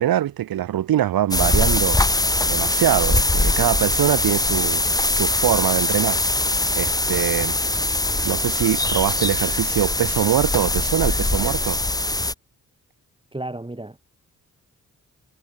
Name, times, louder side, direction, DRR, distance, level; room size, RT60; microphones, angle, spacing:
voice 1, 0.0-2.0 2.5-6.2 6.7-7.6 8.2-11.8, right 12 dB, 90° right, 1.2 m, -23 dB
sound 1, 1.3-12.3, left 2 dB, 10° left, 1.0 m, -22 dB
voice 2, 13.3-14.0, right 1 dB, 15° right, 3.0 m, -32 dB
cardioid pair, 65°, 34 cm